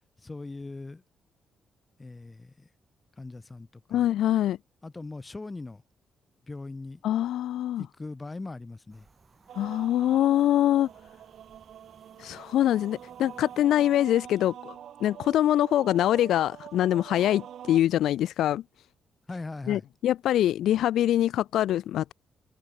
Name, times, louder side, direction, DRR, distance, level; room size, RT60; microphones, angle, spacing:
voice 1, 0.2-1.0 2.0-2.7 3.2-4.1 4.8-5.8 6.5-7.0 7.8-9.1 19.3-19.8, left 3 dB, 15° left, 2.1 m, -40 dB
voice 2, 3.9-4.6 7.0-7.9 9.5-10.9 12.2-14.7 15.0-18.6 19.7-22.1, left 12 dB, 80° left, 0.4 m, -24 dB
sound 1, 8.9-14.0, right 4 dB, 25° right, 7.5 m, -60 dB
sound 2, 9.5-17.8, right 10 dB, 60° right, 3.2 m, -45 dB
cardioid pair, 160°, 0 cm